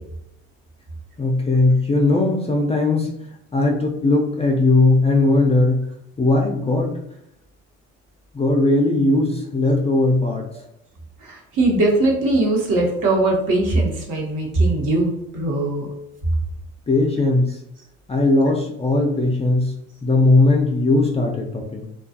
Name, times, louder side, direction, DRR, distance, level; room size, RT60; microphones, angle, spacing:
voice 1, 1.2-3.1 3.5-5.8 6.2-6.9 8.3-10.4 16.9-17.6 18.1-19.7 20.0-21.9, left 2 dB, 15° left, 0 dB, 0.4 m, -18 dB
voice 2, 11.2-15.9, right 2 dB, 60° right, -1 dB, 1.0 m, -20 dB
2.3 x 2.3 x 2.6 m, 0.79 s
hypercardioid pair, 70°, 37 cm